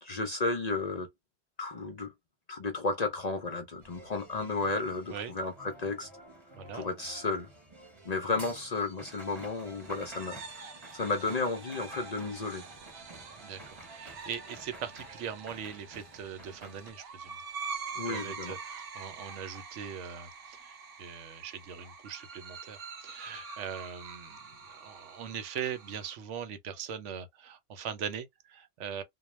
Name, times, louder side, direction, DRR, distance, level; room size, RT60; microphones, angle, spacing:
voice 1, 0.0-1.1 1.6-2.1 2.5-6.1 6.7-7.5 8.0-10.6 10.9-12.6 18.0-18.6 23.5-23.6, left 3 dB, 50° left, 0.5 m, -33 dB
sound 1, 3.8-16.9, right 2 dB, 25° right, 0.9 m, -51 dB
voice 2, 6.6-6.9 13.4-13.6 13.9-17.4 18.1-29.0, right 8 dB, 85° right, 0.9 m, -41 dB
sound 2, 8.9-26.2, right 5 dB, 60° right, 0.8 m, -45 dB
2.2 x 2.1 x 3.0 m
omnidirectional pair, 1.2 m